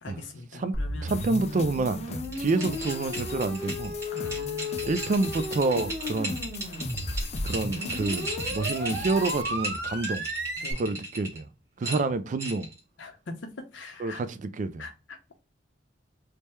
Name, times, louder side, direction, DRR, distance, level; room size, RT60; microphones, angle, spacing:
voice 1, 0.0-1.2 4.1-4.8 10.6-10.9 11.8-12.1 13.0-14.2 14.8-15.4, left 3 dB, 85° left, 0.8 m, -42 dB
sound 1, 0.7-10.7, left 1 dB, 65° right, 1.5 m, -34 dB
voice 2, 1.0-3.9 4.9-6.4 7.4-10.3 10.8-11.5 11.8-12.7 14.0-14.3 14.6-14.8, right 3 dB, 40° right, 0.3 m, -28 dB
sound 2, 1.1-9.4, left 4 dB, 35° left, 0.3 m, -40 dB
sound 3, 2.2-11.4 11.8-12.8, right 2 dB, 15° right, 1.2 m, -36 dB
3.3 x 2.1 x 4.3 m
head